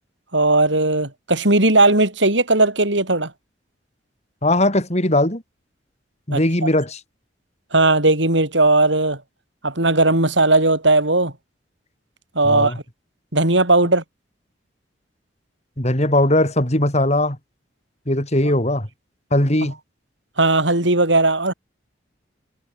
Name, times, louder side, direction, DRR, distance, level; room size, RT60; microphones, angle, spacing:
voice 1, 0.3-3.3 6.3-6.7 7.7-9.2 9.6-11.3 12.4-12.7 13.3-14.0 19.6-19.7 20.4-21.5, right 2 dB, 80° right, 7.1 m, -17 dB
voice 2, 4.4-5.4 6.3-7.0 12.4-12.8 15.8-17.4 18.1-18.9 19.3-19.7, left 1 dB, 35° left, 6.3 m, -19 dB
head